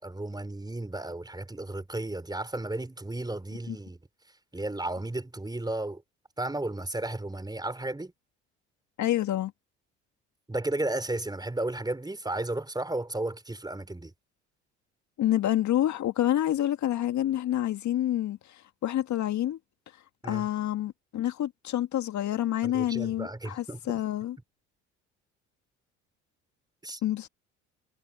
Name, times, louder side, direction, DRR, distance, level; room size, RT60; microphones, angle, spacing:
voice 1, 0.0-4.0 4.5-6.0 6.4-8.1 10.5-14.1 20.2-20.5 22.6-23.8 26.8-27.0, right 2 dB, 10° right, 4.7 m, -33 dB
voice 2, 9.0-9.5 15.2-19.6 20.3-24.4 27.0-27.3, left 12 dB, 50° left, 1.9 m, -28 dB
hypercardioid pair, 60°, 36 cm